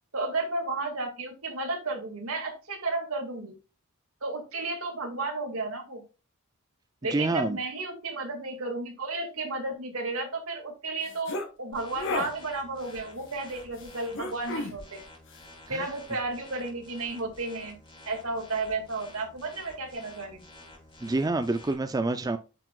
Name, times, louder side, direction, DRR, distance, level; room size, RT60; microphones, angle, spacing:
voice 1, 0.1-3.5 4.2-6.0 7.0-15.0 15.7-17.8 18.1-20.4, right 3 dB, 70° right, 2.1 m, -33 dB
voice 2, 7.1-7.6 15.7-15.9 21.0-22.4, right 2 dB, 15° right, 0.4 m, -27 dB
sound 1, 11.1-11.5 12.0-12.3 14.1-14.8, left 2 dB, 60° left, 1.4 m, -31 dB
sound 2, 11.7-21.7, left 1 dB, 25° left, 3.1 m, -51 dB
9.0 x 5.9 x 2.3 m
head